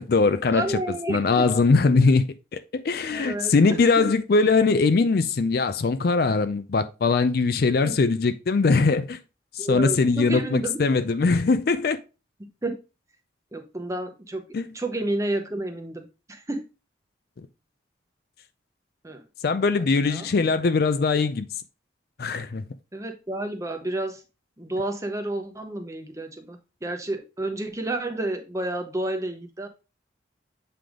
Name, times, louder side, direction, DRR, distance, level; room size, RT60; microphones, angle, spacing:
voice 1, 0.0-0.7 1.1-2.2 2.5-9.2 9.6-12.0 14.5-14.7 19.4-21.5 22.2-22.6, left 4 dB, 50° left, 0.4 m, -21 dB
voice 2, 0.5-1.4 3.1-4.1 7.8-8.0 9.6-10.8 12.6-12.8 13.5-14.4 14.7-16.6 19.0-19.2 20.1-20.3 22.9-24.2 24.6-29.7, right 1 dB, 15° right, 0.8 m, -30 dB
7.6 x 3.4 x 3.6 m
head